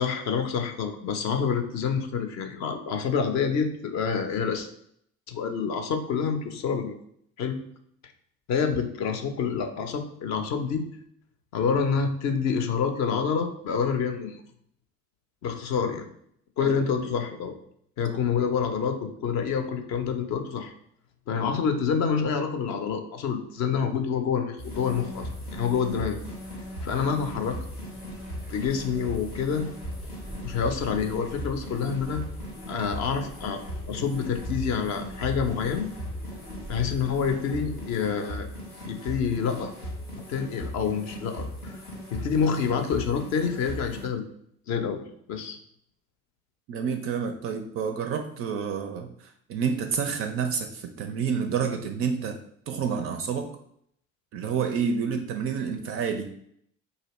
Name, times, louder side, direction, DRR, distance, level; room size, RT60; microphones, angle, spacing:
voice 1, 0.0-4.7 5.3-6.9 7.4-7.6 8.5-10.9 11.5-14.4 15.4-16.0 16.6-17.6 18.0-20.7 21.3-26.2 26.8-27.6 28.5-29.7 30.4-32.2 32.7-33.6 33.9-35.9 36.7-38.5 38.9-39.7 40.3-41.8 42.1-44.2 44.7-45.0 45.3-45.6, left 6 dB, 40° left, 6 dB, 0.5 m, -27 dB
voice 2, 16.6-17.1 18.1-18.2 46.7-52.3 52.7-53.5 54.3-56.3, right 6 dB, 35° right, 5 dB, 0.4 m, -29 dB
sound 1, 24.6-44.1, equal, 90° left, 0.9 m, -38 dB
sound 2, 24.7-38.0, equal, ahead, 0.7 m, -45 dB
3.9 x 2.7 x 3.0 m, 0.68 s
figure-of-eight pair, 55°, 43 cm